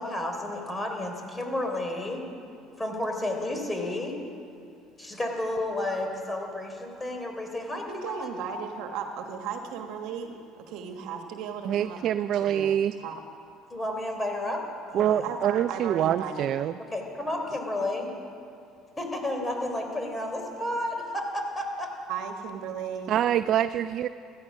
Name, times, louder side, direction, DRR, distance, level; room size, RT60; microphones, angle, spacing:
voice 1, 0.0-2.3 2.8-4.2 5.0-8.4 13.7-14.6 14.9-15.3 16.9-18.1 19.0-21.9, left 1 dB, 15° left, 3 dB, 3.6 m, -31 dB
voice 2, 7.7-12.0 12.4-13.2 15.2-16.5 22.1-23.1, right 6 dB, 70° right, 5 dB, 1.4 m, -36 dB
voice 3, 11.7-12.9 14.9-16.7 23.1-24.1, right 10 dB, 55° right, 12 dB, 0.4 m, -25 dB
16.0 x 14.5 x 6.3 m, 2.5 s
supercardioid pair, 85°, 0 cm